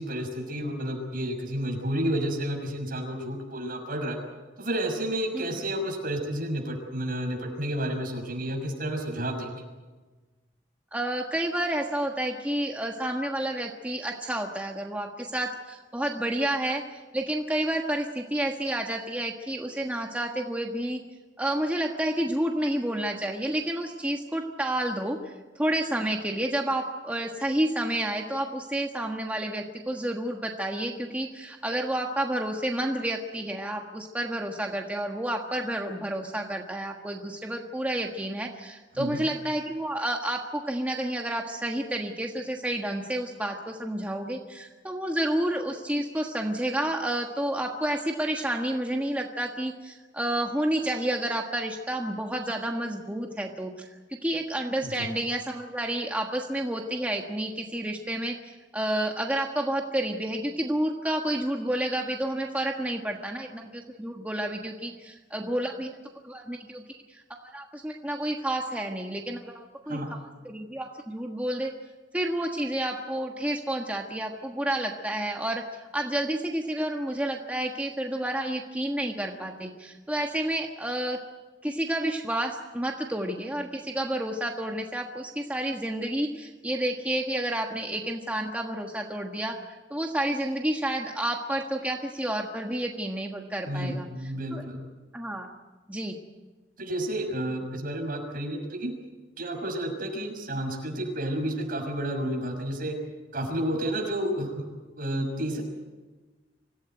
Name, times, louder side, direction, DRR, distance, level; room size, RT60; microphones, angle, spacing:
voice 1, 0.0-4.2 4.6-9.6 39.0-39.2 54.8-55.1 69.9-70.1 93.7-94.8 96.8-98.9 99.4-103.0 103.3-104.7 104.9-105.6, right 1 dB, 50° right, 3 dB, 6.3 m, -31 dB
voice 2, 10.9-16.8 17.1-21.0 21.4-53.9 54.2-65.9 66.2-70.2 70.4-71.7 72.1-81.2 81.6-94.1 94.5-94.6 95.1-95.5 95.9-96.2, right 1 dB, 10° right, 1 dB, 1.5 m, -30 dB
25.5 x 16.0 x 9.2 m, 1.3 s
head